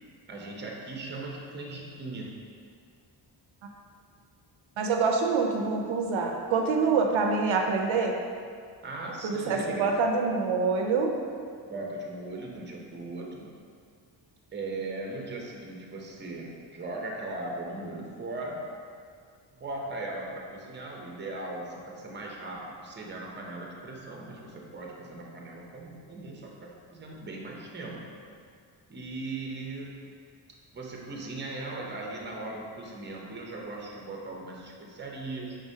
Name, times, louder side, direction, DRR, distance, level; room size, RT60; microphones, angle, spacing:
voice 1, 0.3-2.3 8.8-9.9 11.6-13.5 14.5-18.6 19.6-28.0 28.9-30.0 30.7-35.6, right 2 dB, 25° right, -1 dB, 0.7 m, -38 dB
voice 2, 4.8-8.2 9.2-11.2, right 4 dB, 80° right, 2 dB, 0.6 m, -26 dB
4.8 x 3.8 x 2.7 m, 2.2 s
wide cardioid pair, 110°, 46 cm